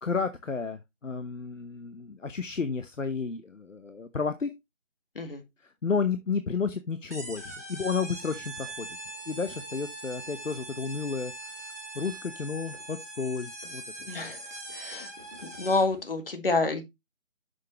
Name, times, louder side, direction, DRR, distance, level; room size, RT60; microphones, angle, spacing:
voice 1, 0.0-4.5 5.8-8.9 9.3-11.6 11.9-13.8, left 5 dB, 80° left, 1.0 m, -32 dB
sound 1, 7.1-16.0, right 2 dB, 15° right, 1.0 m, -42 dB
voice 2, 14.0-14.4 14.7-15.1 15.6-16.8, left 3 dB, 45° left, 1.8 m, -28 dB
7.3 x 6.7 x 3.0 m
figure-of-eight pair, 165°, 38 cm